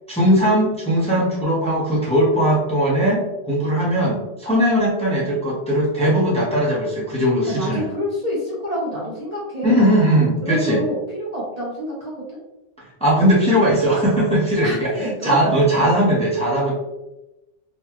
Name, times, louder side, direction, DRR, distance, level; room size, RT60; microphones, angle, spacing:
voice 1, 0.1-7.8 9.6-10.8 12.8-16.7, equal, 5° left, -6 dB, 0.8 m, -19 dB
voice 2, 7.5-9.9 10.4-12.4 14.6-15.4 15.7-15.9, equal, 40° right, -6 dB, 0.8 m, -28 dB
4.0 x 2.3 x 3.0 m, 0.97 s
omnidirectional pair, 1.2 m